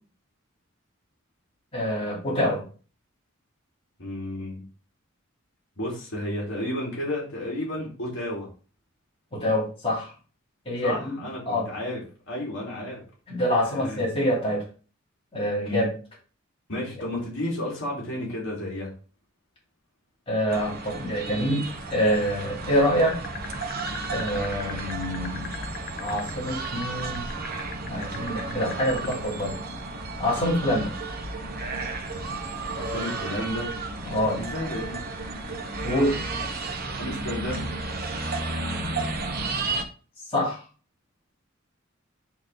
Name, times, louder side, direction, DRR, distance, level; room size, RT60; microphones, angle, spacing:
voice 1, 1.7-2.6 9.3-10.1 10.6-11.2 11.5-11.7 13.3-14.6 15.3-15.9 20.3-21.6 21.9-23.2 24.1-25.5 26.0-27.2 27.9-29.6 30.2-30.9 34.1-34.4 35.8-36.2 40.3-40.6, equal, 30° left, -5 dB, 2.8 m, -26 dB
voice 2, 4.0-4.6 5.8-8.5 10.8-13.0 13.8-14.0 15.7-15.8 16.7-18.9 32.7-33.7 34.3-35.0 37.0-37.7, left 1 dB, 65° left, -3 dB, 2.5 m, -32 dB
sound 1, 20.5-39.8, right 3 dB, 50° right, 1.0 m, -33 dB
sound 2, 23.0-29.2, left 7 dB, 50° left, 0.7 m, -37 dB
8.7 x 3.1 x 3.8 m, 0.36 s
head